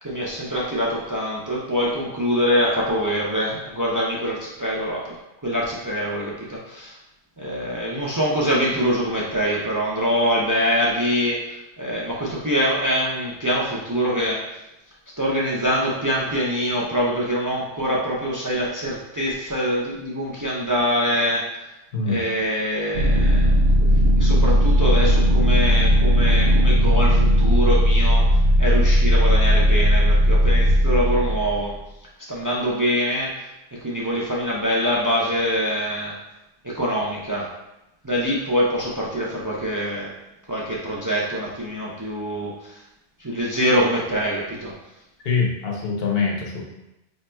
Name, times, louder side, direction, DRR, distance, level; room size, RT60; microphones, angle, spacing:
voice 1, 0.0-5.2 5.4-7.0 7.4-14.4 15.2-21.7 22.1-23.7 24.2-31.8 32.3-33.5 33.7-36.1 36.6-37.5 38.0-40.1 40.5-42.8 43.2-44.7, equal, 30° right, -5 dB, 0.4 m, -24 dB
voice 2, 21.9-22.2 45.2-46.6, left 4 dB, 60° left, -1 dB, 0.9 m, -24 dB
sound 1, 22.9-31.6, equal, 70° right, 0.8 m, -17 dB
5.0 x 2.9 x 2.2 m, 0.93 s
omnidirectional pair, 1.2 m